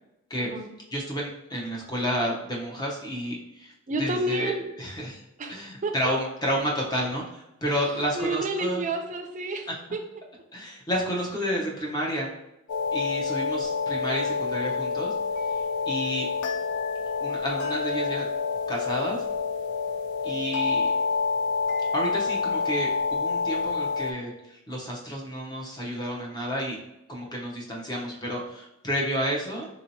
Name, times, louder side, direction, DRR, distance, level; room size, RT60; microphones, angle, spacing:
voice 1, 0.9-3.7 4.0-5.2 5.5-8.9 10.5-12.3 12.9-15.1 15.5-16.3 17.2-18.2 18.7-19.2 20.2-20.9 21.9-26.8 27.1-29.7, equal, 20° left, -2 dB, 0.8 m, -30 dB
voice 2, 3.9-4.6 5.4-5.9 7.7-10.0 16.0-16.1 20.3-20.5, right 2 dB, 35° right, 4 dB, 0.4 m, -31 dB
sound 1, 12.7-24.1, left 4 dB, 55° left, 0.4 m, -28 dB
3.9 x 2.9 x 2.7 m, 0.87 s
head